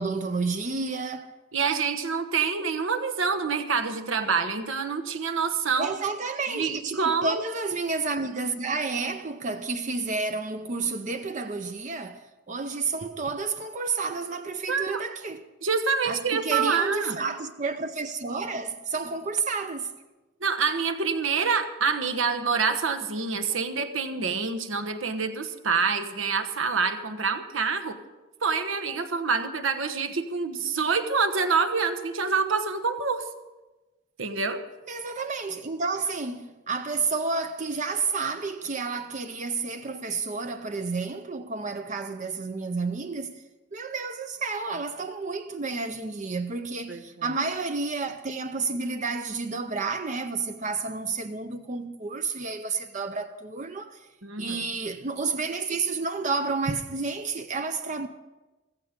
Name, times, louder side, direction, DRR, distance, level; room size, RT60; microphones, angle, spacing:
voice 1, 0.0-1.3 5.8-15.4 16.0-19.9 34.9-43.4 43.7-54.1 54.4-58.1, right 4 dB, 40° right, 0.6 m, -30 dB
voice 2, 1.5-5.9 6.5-7.4 14.7-15.0 15.6-17.2 20.4-28.0 28.4-33.2 34.2-34.6 46.9-47.3 54.2-54.7, right 5 dB, 80° right, 1.2 m, -26 dB
15.0 x 15.0 x 5.1 m
head